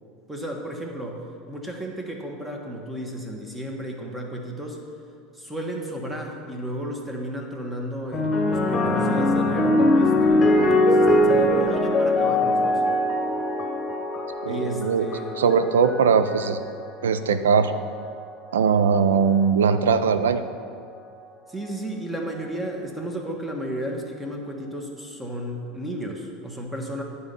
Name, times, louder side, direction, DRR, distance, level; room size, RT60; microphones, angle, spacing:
voice 1, 0.3-4.8 5.3-12.8 14.5-15.4 21.5-27.0, right 1 dB, 10° right, 1 dB, 1.3 m, -33 dB
sound 1, 8.1-16.7 17.6-18.0, left 1 dB, 30° left, 1.1 m, -22 dB
voice 2, 14.4-15.1 15.4-16.6 17.0-17.7 18.5-20.4, right 6 dB, 85° right, 10 dB, 0.4 m, -20 dB
9.8 x 4.2 x 5.4 m, 2.3 s
hypercardioid pair, 90°, 0 cm